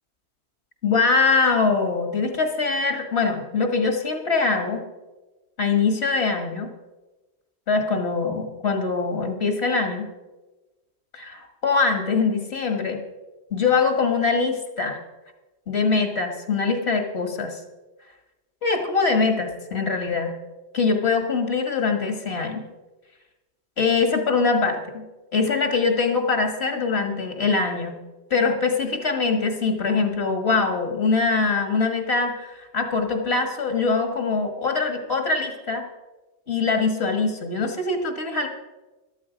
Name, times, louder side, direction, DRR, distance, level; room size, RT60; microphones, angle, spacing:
voice 1, 0.8-4.8 5.6-6.7 7.7-10.1 11.1-13.0 13.5-15.0 15.7-17.6 18.6-20.4 20.7-22.6 23.8-25.0 25.3-28.0 28.3-35.8 36.5-38.5, left 4 dB, 65° left, 6 dB, 1.8 m, -23 dB
13.0 x 12.5 x 5.0 m, 1.1 s
omnidirectional pair, 1.2 m